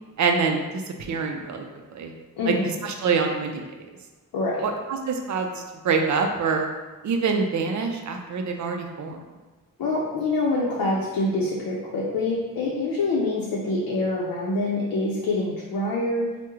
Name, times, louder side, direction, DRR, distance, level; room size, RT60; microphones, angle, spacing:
voice 1, 0.2-0.6 1.0-1.6 1.9-2.1 2.5-2.6 2.8-3.6 4.6-6.7 7.0-9.2, right 5 dB, 55° right, 3 dB, 0.4 m, -25 dB
voice 2, 2.4-2.8 4.3-4.6 9.8-16.3, left 2 dB, 90° left, -4 dB, 0.6 m, -25 dB
3.0 x 2.1 x 3.5 m, 1.3 s
wide cardioid pair, 145°, 34 cm